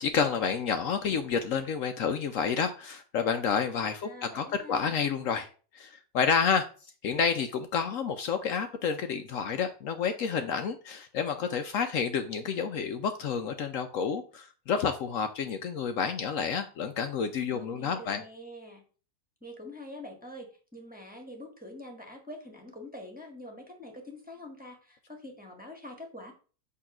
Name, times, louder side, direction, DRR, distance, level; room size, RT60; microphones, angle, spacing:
voice 1, 0.0-5.5 5.7-6.7 7.0-18.2, left 6 dB, 65° left, 7 dB, 0.9 m, -29 dB
voice 2, 4.0-5.0 17.5-18.8 19.4-26.3, left 1 dB, 5° right, 0 dB, 1.3 m, -45 dB
8.5 x 2.8 x 5.8 m, 0.38 s
omnidirectional pair, 1.6 m